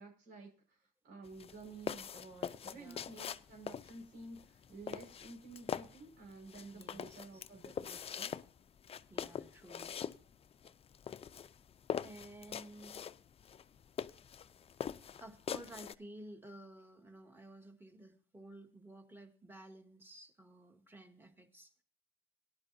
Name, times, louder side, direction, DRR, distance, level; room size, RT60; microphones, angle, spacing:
voice 1, 0.0-8.4, right 3 dB, 80° right, -1 dB, 5.4 m, -52 dB
sound 1, 1.2-15.9, left 8 dB, 35° left, 0.6 m, -43 dB
voice 2, 2.7-3.1 6.7-7.4 9.1-10.0 12.0-13.1 15.1-21.7, right 1 dB, 15° right, 5 dB, 2.0 m, -53 dB
18.0 x 11.5 x 2.7 m, 0.39 s
cardioid pair, 110°, 17 cm